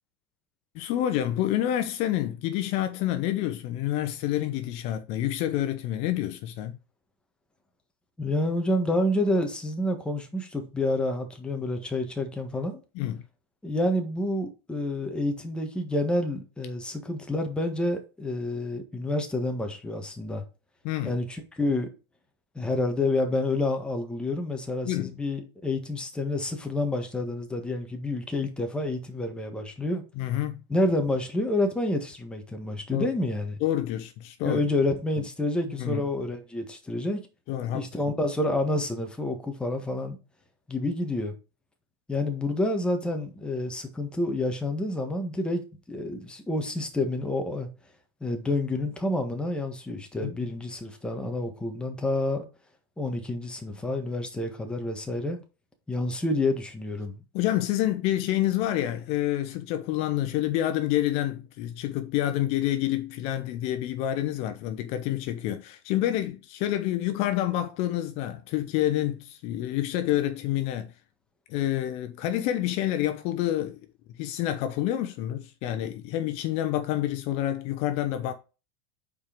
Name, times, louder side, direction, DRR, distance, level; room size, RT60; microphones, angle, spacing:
voice 1, 0.7-6.8 12.9-13.2 20.8-21.2 24.8-25.1 30.2-30.6 32.9-33.1 33.6-34.6 35.2-35.3 35.8-36.0 37.5-38.1 50.2-50.5 57.3-70.9 71.5-73.8 74.2-78.3, left 13 dB, 55° left, 0.8 m, -28 dB
voice 2, 8.2-12.8 13.6-20.4 21.0-21.9 22.5-30.0 30.7-33.6 34.4-37.2 37.7-40.2 40.7-41.3 42.1-45.6 45.9-47.7 48.2-52.4 53.0-55.4 55.9-57.2, left 2 dB, 5° left, 1.5 m, -28 dB
5.5 x 4.6 x 5.1 m
supercardioid pair, 125°, 13 cm